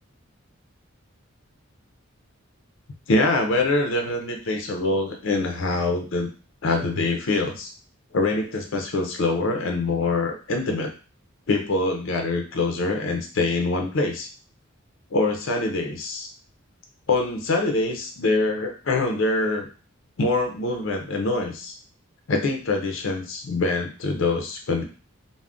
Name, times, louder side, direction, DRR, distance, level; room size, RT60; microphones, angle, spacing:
voice 1, 3.1-6.3 6.6-7.7 8.1-10.9 11.5-14.3 15.1-16.3 17.1-19.7 20.2-21.8 22.3-24.8, left 2 dB, 65° left, 3 dB, 0.5 m, -24 dB
2.4 x 2.1 x 3.5 m, 0.35 s
head